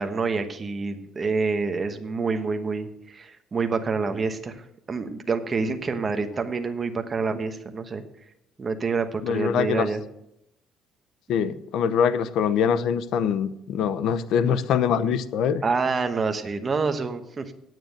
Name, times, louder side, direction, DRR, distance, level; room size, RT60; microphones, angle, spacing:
voice 1, 0.0-4.5 4.9-8.0 8.6-10.0 15.6-17.5, right 4 dB, 25° right, 7 dB, 1.1 m, -27 dB
voice 2, 9.2-9.9 11.3-15.6, left 7 dB, 65° left, 13 dB, 0.8 m, -23 dB
9.3 x 8.9 x 6.5 m, 0.82 s
cardioid pair, 150°, 0 cm